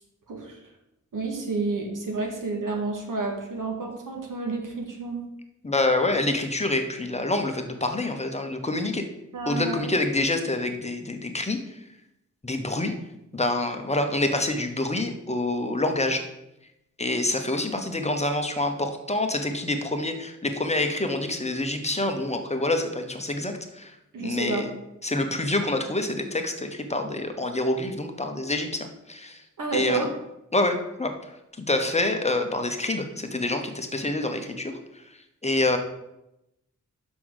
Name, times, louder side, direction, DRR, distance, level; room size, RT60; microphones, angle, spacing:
voice 1, 0.3-0.6 1.1-5.2 9.3-9.9 24.1-24.6 29.6-30.1, right 3 dB, 90° right, 1 dB, 1.8 m, -30 dB
voice 2, 5.6-9.0 9.5-11.6 12.4-12.9 13.3-16.2 17.0-23.9 24.2-24.7 25.0-29.4 29.7-30.1 30.5-34.8 35.4-35.8, left 2 dB, 20° left, 5 dB, 0.9 m, -27 dB
6.2 x 5.6 x 6.4 m, 0.88 s
wide cardioid pair, 125°, 31 cm